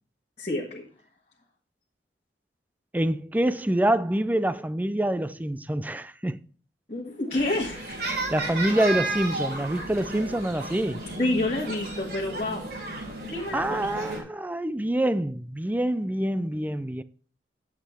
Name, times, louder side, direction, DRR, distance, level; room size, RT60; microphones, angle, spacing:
voice 1, 0.4-0.8 6.9-8.0 11.2-12.7 13.2-14.2, left 2 dB, 35° left, 1.8 m, -29 dB
voice 2, 2.9-6.4 8.0-11.0 13.5-17.0, right 1 dB, 10° right, 0.4 m, -26 dB
sound 1, 7.3-14.2, right 2 dB, 60° right, 4.8 m, -33 dB
10.0 x 7.5 x 4.3 m
head